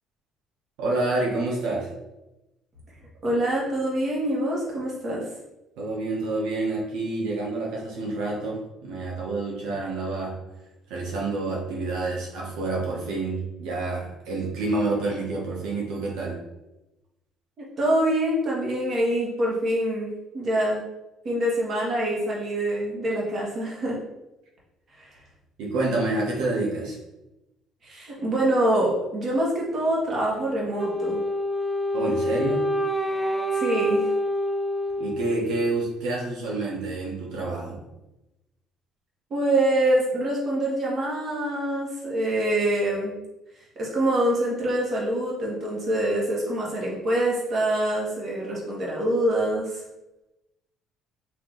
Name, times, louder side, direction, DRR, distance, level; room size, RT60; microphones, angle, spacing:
voice 1, 0.8-1.9 5.8-10.3 10.9-16.4 25.6-27.0 31.9-32.7 35.0-37.8, right 2 dB, 85° right, -2 dB, 1.1 m, -28 dB
voice 2, 3.2-5.3 17.8-20.1 20.3-20.8 21.2-24.0 25.0-25.1 27.8-31.2 33.5-34.1 39.3-43.1 43.7-49.8, right 1 dB, 40° right, -4 dB, 1.4 m, -25 dB
Wind instrument woodwind instrument, 30.8-35.8, left 1 dB, 5° left, 0.3 m, -27 dB
4.5 x 2.8 x 3.8 m, 0.97 s
cardioid pair, 150°, 0 cm